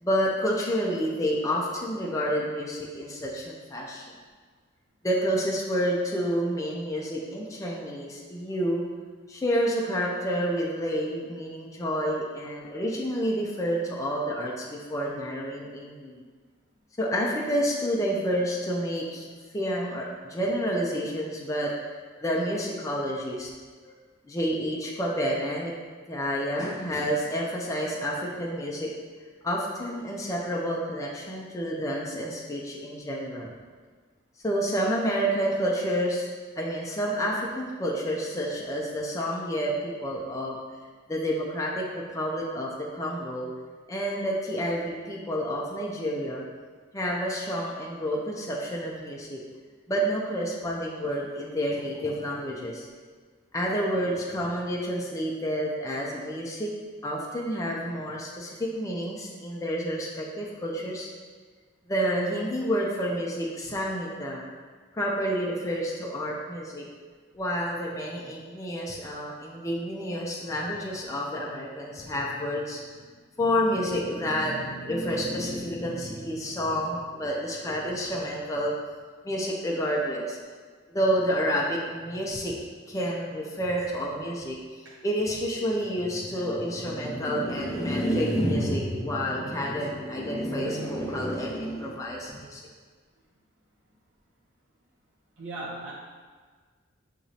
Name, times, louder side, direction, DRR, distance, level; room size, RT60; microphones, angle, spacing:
voice 1, 0.0-4.0 5.0-8.9 9.3-16.2 17.0-21.7 22.2-23.5 23.8-23.9 24.3-25.7 26.1-28.9 29.4-33.5 34.4-36.3 36.6-40.6 41.1-43.5 43.9-46.4 46.9-49.4 49.9-52.9 53.5-56.7 57.0-61.1 61.9-64.4 64.9-66.9 67.3-72.9 73.4-78.7 79.2-80.4 80.9-82.6 82.9-92.6, equal, 15° left, -3 dB, 0.4 m, -29 dB
voice 2, 95.4-95.9, right 2 dB, 70° right, -7 dB, 0.8 m, -37 dB
6.4 x 2.9 x 2.7 m, 1.5 s
head